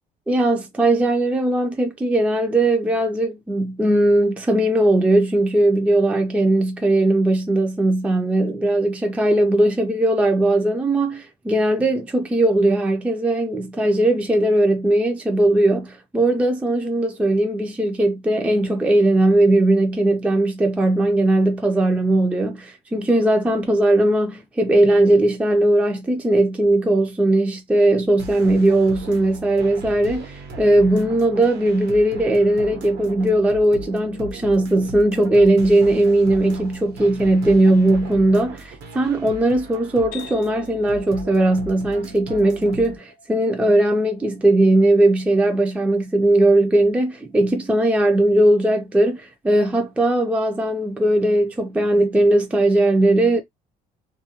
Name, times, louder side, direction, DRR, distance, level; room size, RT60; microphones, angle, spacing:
voice 1, 0.3-53.4, right 1 dB, 10° right, 0.4 m, -18 dB
sound 1, 28.2-43.0, right 2 dB, 80° right, 0.9 m, -38 dB
sound 2, 40.1-47.6, left 5 dB, 60° left, 0.7 m, -48 dB
2.3 x 2.2 x 2.8 m
cardioid pair, 110°, 17 cm